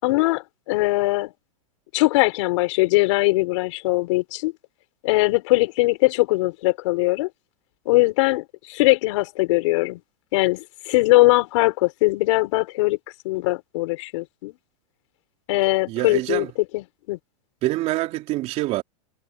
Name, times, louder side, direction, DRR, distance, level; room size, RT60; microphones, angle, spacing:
voice 1, 0.0-1.3 1.9-4.5 5.0-7.3 7.9-10.0 10.3-13.0 13.2-14.5 15.5-16.5 16.7-17.2, left 21 dB, 55° left, 6.0 m, -21 dB
voice 2, 15.9-16.5 17.6-18.8, right 17 dB, 35° right, 4.4 m, -25 dB
supercardioid pair, 150°, 18 cm